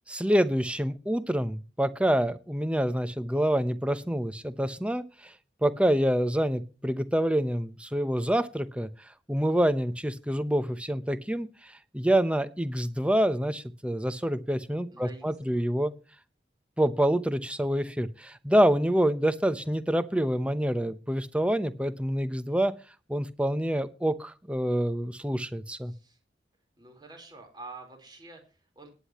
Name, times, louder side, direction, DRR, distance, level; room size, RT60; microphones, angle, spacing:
voice 1, 0.1-5.3 5.6-15.9 16.8-22.7 23.1-25.9, equal, 5° right, 12 dB, 0.8 m, -27 dB
voice 2, 14.9-15.6 25.8-26.2 26.8-28.9, right 3 dB, 25° right, 4 dB, 4.3 m, -48 dB
18.5 x 10.0 x 3.1 m, 0.33 s
head